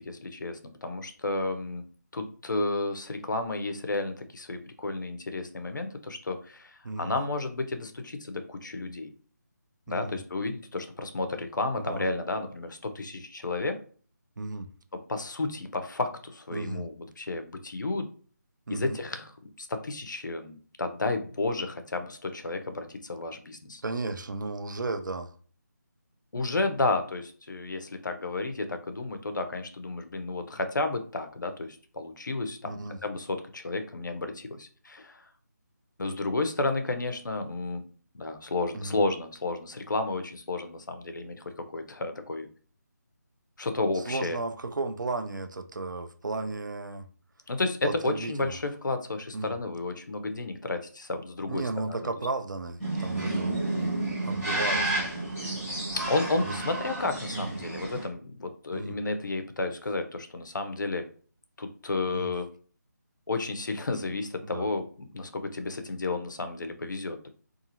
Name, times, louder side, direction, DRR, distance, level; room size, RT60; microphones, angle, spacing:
voice 1, 0.0-1.8 2.1-9.1 9.9-13.8 14.9-18.1 18.7-19.3 19.6-23.8 26.3-35.2 36.0-37.8 38.1-42.5 43.6-44.4 47.5-52.0 55.9-61.1 61.6-62.5 63.3-67.3, left 3 dB, 85° left, 0.6 m, -32 dB
voice 2, 9.9-10.2 11.8-12.1 14.4-14.7 16.5-16.8 18.7-19.0 23.8-25.3 32.6-33.0 38.7-39.0 43.9-47.1 47.8-48.5 49.3-49.6 51.5-53.9 54.2-55.2 56.5-56.6 57.3-57.6 58.7-59.0 62.1-62.3 64.4-64.7, right 3 dB, 85° right, 0.5 m, -34 dB
sound 1, 52.8-58.1, right 2 dB, 5° left, 0.5 m, -31 dB
2.7 x 2.4 x 2.8 m
figure-of-eight pair, 175°, 10 cm